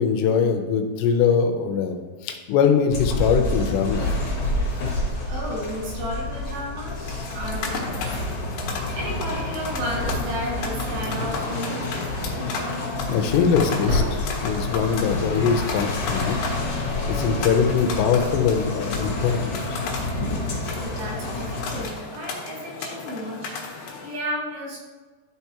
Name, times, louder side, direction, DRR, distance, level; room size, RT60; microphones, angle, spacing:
voice 1, 0.0-2.0 2.2-4.1 13.1-16.4 17.1-19.6, left 6 dB, 90° left, 5 dB, 2.9 m, -22 dB
sound 1, 2.9-21.9, left 2 dB, 50° left, 1.9 m, -29 dB
voice 2, 5.3-8.4 8.9-11.9 20.8-24.8, equal, 90° right, -3 dB, 3.9 m, -33 dB
sound 2, 6.8-24.2, left 4 dB, 75° left, 2.8 m, -35 dB
sound 3, 10.1-12.4 13.2-15.1, left 1 dB, 45° right, 2.7 m, -31 dB
12.5 x 4.7 x 2.9 m, 1.3 s
omnidirectional pair, 4.8 m